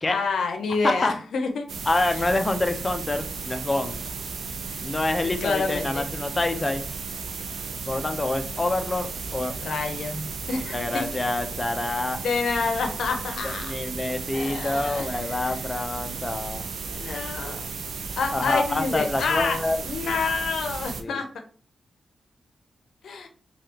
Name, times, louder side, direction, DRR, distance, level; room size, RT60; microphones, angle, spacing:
voice 1, 0.1-1.7 2.1-2.2 5.2-6.0 9.6-11.1 12.2-13.7 14.3-15.5 16.9-17.7 18.2-19.6 19.8-21.3 23.0-23.3, left 4 dB, 85° left, 4 dB, 0.6 m, -28 dB
sound 1, 1.7-21.0, right 4 dB, 85° right, 0.4 m, -34 dB
voice 2, 1.9-4.0 4.8-6.8 7.9-9.5 10.5-12.2 13.4-16.7 18.3-19.8 21.0-21.2, left 2 dB, 25° left, 6 dB, 0.5 m, -27 dB
3.3 x 2.4 x 2.8 m, 0.42 s
cardioid pair, 75°, 0 cm